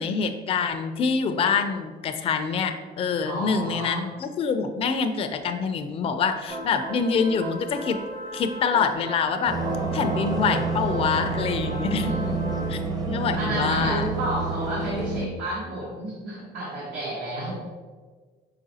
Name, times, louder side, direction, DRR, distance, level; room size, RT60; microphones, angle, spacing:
voice 1, 0.0-8.0 8.3-9.6 9.9-12.1 12.7-12.8 13.1-14.1, left 5 dB, 35° left, 7 dB, 0.3 m, -25 dB
voice 2, 3.2-4.1 12.0-12.3 13.4-17.5, right 1 dB, 85° right, -5 dB, 1.0 m, -31 dB
sound 1, 6.5-12.7, equal, 50° right, 1.3 m, -36 dB
sound 2, 9.5-15.3, right 3 dB, 25° right, 0.6 m, -28 dB
4.8 x 3.4 x 2.7 m, 1.4 s
cardioid pair, 110°, 17 cm